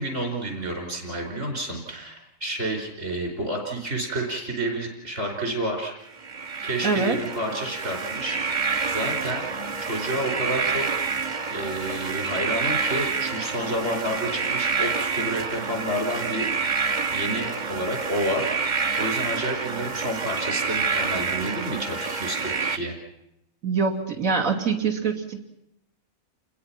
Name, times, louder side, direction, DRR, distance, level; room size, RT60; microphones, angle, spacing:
voice 1, 0.0-5.9 6.6-9.5 9.8-11.0 11.5-18.6 19.0-23.0, right 1 dB, 55° right, 2 dB, 5.2 m, -30 dB
sound 1, 6.2-22.8, right 5 dB, 35° right, 1.1 m, -28 dB
voice 2, 6.8-7.2 23.6-25.4, right 5 dB, 70° right, 2 dB, 3.2 m, -24 dB
30.0 x 21.5 x 5.9 m, 0.83 s
omnidirectional pair, 1.5 m